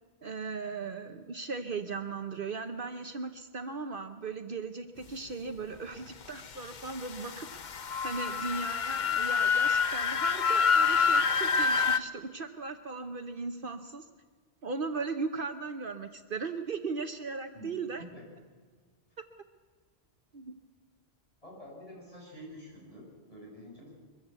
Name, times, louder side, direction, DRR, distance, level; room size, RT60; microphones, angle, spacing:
voice 1, 0.2-7.5 8.0-14.1 14.6-18.0 20.3-20.5, right 4 dB, 55° right, 7 dB, 1.1 m, -37 dB
sound 1, 6.9-12.0, left 5 dB, 50° left, 0.8 m, -27 dB
voice 2, 17.5-18.2 21.4-23.9, equal, 30° left, -3 dB, 7.7 m, -48 dB
23.0 x 15.0 x 8.2 m, 1.5 s
omnidirectional pair, 1.1 m